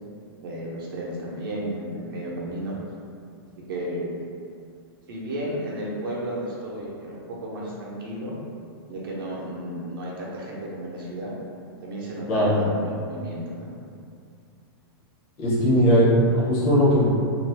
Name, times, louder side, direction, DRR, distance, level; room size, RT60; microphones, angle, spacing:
voice 1, 0.4-2.7 3.7-4.1 5.1-8.3 8.9-11.4 11.8-13.7, right 1 dB, 60° right, -5 dB, 0.8 m, -33 dB
voice 2, 15.4-17.1, equal, 25° left, -7 dB, 0.7 m, -19 dB
2.6 x 2.4 x 3.3 m, 2.4 s
supercardioid pair, 180°, 13 cm